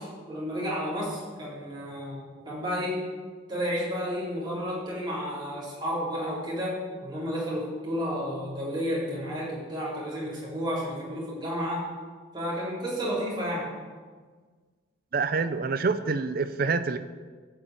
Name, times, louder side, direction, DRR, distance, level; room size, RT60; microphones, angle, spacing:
voice 1, 0.0-3.0 3.5-11.9 12.3-13.7, equal, 25° right, -6 dB, 3.8 m, -31 dB
voice 2, 15.1-17.0, right 4 dB, 50° right, 11 dB, 0.5 m, -26 dB
13.0 x 5.4 x 8.5 m, 1.5 s
head